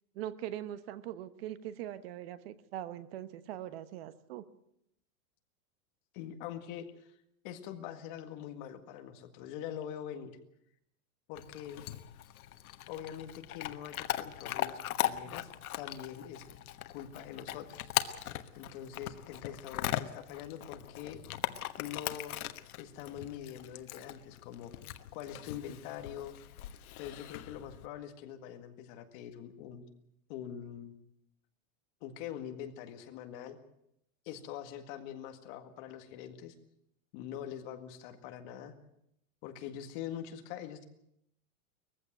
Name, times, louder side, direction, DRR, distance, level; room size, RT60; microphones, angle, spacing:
voice 1, 0.1-4.4, right 12 dB, 45° right, 14 dB, 1.1 m, -41 dB
voice 2, 6.1-7.1 7.4-10.4 11.3-11.9 12.9-15.5 15.8-16.4 16.9-17.9 18.6-21.2 21.8-22.3 22.8-24.7 25.1-26.3 27.0-29.9 30.3-31.0 32.0-33.6 34.3-36.5 37.1-38.7 39.4-40.8, left 10 dB, 35° left, 7 dB, 1.9 m, -44 dB
Chewing mastication / Dog, 11.3-27.9, left 13 dB, 90° left, 1.3 m, -39 dB
20.5 x 15.0 x 9.1 m, 0.77 s
supercardioid pair, 175°, 42 cm